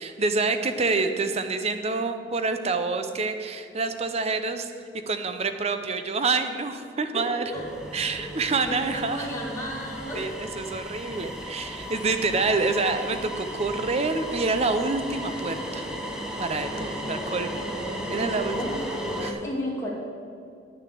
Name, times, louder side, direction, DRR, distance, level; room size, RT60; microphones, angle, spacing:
voice 1, 0.0-4.7 5.1-7.5 7.9-9.3 10.1-15.9 16.4-17.6 18.1-18.6 19.2-19.4, right 3 dB, 35° right, 8 dB, 0.7 m, -27 dB
voice 2, 7.1-7.6 8.7-10.3 16.1-16.3 16.6-16.8 18.1-18.7 19.4-19.9, equal, 15° left, -4 dB, 2.4 m, -34 dB
sound 1, 7.5-19.3, equal, 5° right, 1.0 m, -35 dB
9.1 x 6.7 x 7.5 m, 2.4 s
head